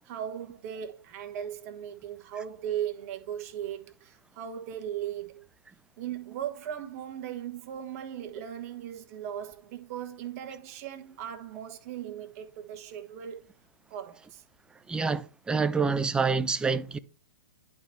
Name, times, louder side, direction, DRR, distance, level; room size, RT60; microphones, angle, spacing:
voice 1, 0.0-5.4 6.0-13.5 13.9-14.4, right 10 dB, 40° right, 1.3 m, -38 dB
voice 2, 14.9-17.0, right 4 dB, 5° right, 0.5 m, -27 dB
10.5 x 4.5 x 3.2 m
figure-of-eight pair, 110°, 12 cm